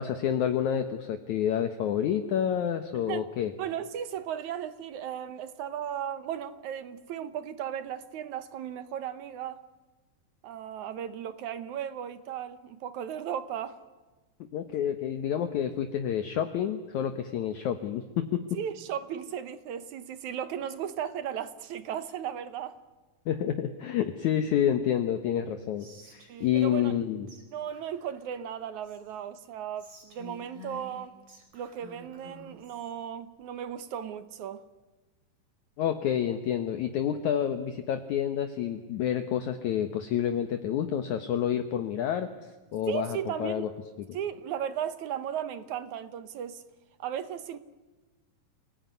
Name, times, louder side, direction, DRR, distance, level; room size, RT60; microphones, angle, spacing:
voice 1, 0.0-3.5 14.5-18.4 23.3-27.3 35.8-43.7, left 9 dB, 65° left, 2.2 m, -29 dB
voice 2, 2.9-3.3 3.6-9.6 10.4-13.8 18.5-22.8 26.3-26.9 27.5-31.2 31.5-34.6 42.9-43.7 44.1-46.6 47.0-47.6, right 9 dB, 70° right, 2.1 m, -36 dB
Whispering, 25.8-27.0 27.3-27.4 27.7-29.2 29.8-32.9, left 2 dB, 40° right, 5.4 m, -51 dB
28.5 x 19.0 x 9.5 m
omnidirectional pair, 4.2 m